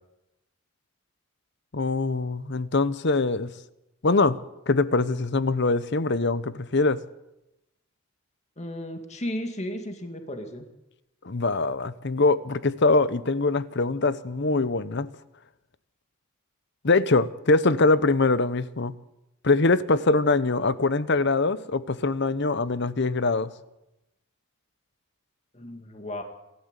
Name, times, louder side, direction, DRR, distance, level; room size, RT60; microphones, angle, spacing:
voice 1, 1.7-3.5 4.0-4.4 4.7-7.0 11.2-15.1 16.8-18.9 19.4-23.5, left 3 dB, 55° left, 0.9 m, -23 dB
voice 2, 8.6-10.7 25.5-26.2, left 1 dB, 30° left, 2.3 m, -34 dB
27.0 x 13.0 x 8.2 m
head